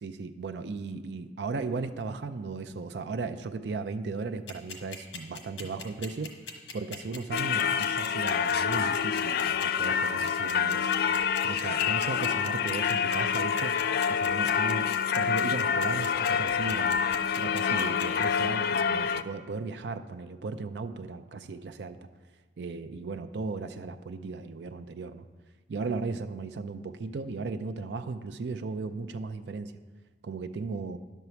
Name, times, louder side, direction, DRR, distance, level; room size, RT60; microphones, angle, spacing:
voice 1, 0.0-6.3 6.7-10.9 11.4-13.7 14.1-14.9 15.2-17.0 17.4-22.0 22.6-25.3 25.7-29.7 30.2-31.0, right 4 dB, 70° right, 9 dB, 0.4 m, -36 dB
sound 1, 4.5-18.2, left 6 dB, 90° left, 1.3 m, -40 dB
Singing / Church bell, 7.3-19.2, left 7 dB, 60° left, 0.4 m, -27 dB
11.0 x 4.6 x 6.9 m, 1.4 s
head